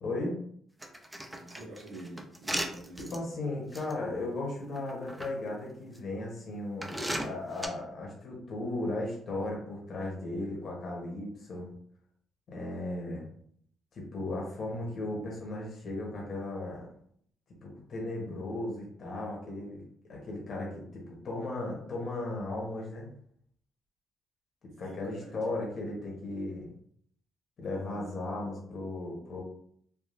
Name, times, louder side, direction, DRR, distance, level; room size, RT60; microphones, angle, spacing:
voice 1, 0.0-0.4 3.1-11.7 12.5-13.3 13.9-16.9 17.6-19.8 20.1-23.1 24.8-26.7 27.6-29.4, left 2 dB, 55° left, -2 dB, 1.0 m, -36 dB
sound 1, 0.8-3.2 3.7-3.9 4.8-5.3 6.0-6.1 6.8-7.7, right 1 dB, 10° right, 0.5 m, -36 dB
voice 2, 1.4-3.3 24.7-25.5 27.6-28.2, right 2 dB, 75° right, -3 dB, 1.2 m, -46 dB
3.5 x 2.3 x 2.5 m, 0.64 s
cardioid pair, 90°, 0 cm